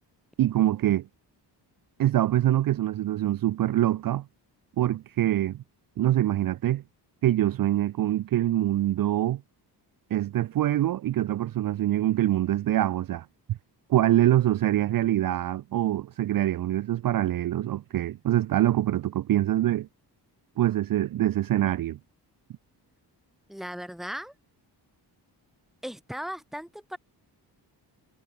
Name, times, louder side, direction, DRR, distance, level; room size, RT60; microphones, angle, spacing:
voice 1, 0.4-1.1 2.0-4.2 4.8-5.6 6.0-6.8 7.2-9.4 10.1-13.6 13.9-19.9 20.6-22.0, right 13 dB, 55° right, 0.5 m, -24 dB
voice 2, 23.5-24.3 25.8-27.0, equal, ahead, 1.7 m, -37 dB
wide cardioid pair, 175°, 42 cm